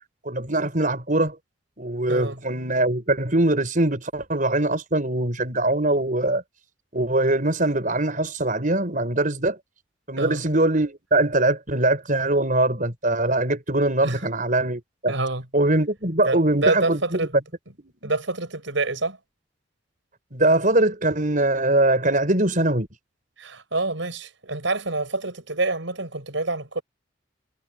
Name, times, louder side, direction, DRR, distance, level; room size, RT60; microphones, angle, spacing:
voice 1, 0.2-1.4 1.8-6.4 6.9-9.6 10.1-15.1 15.5-17.4 17.8-17.9 20.3-22.9, right 2 dB, 45° right, 5.9 m, -22 dB
voice 2, 15.1-15.4 16.2-17.3 18.0-19.2 23.4-26.8, right 2 dB, 80° right, 5.6 m, -27 dB
head